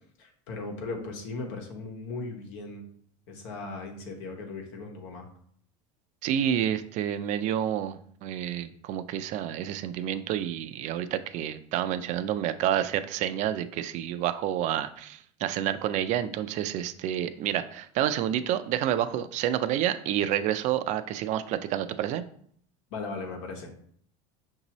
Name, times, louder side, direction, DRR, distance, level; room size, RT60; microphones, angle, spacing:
voice 1, 0.2-2.8 3.3-5.3 22.9-23.9, left 3 dB, 80° left, 2 dB, 1.1 m, -38 dB
voice 2, 6.2-22.2, right 11 dB, 50° right, 11 dB, 0.4 m, -29 dB
5.9 x 2.7 x 3.0 m, 0.63 s
supercardioid pair, 125°, 16 cm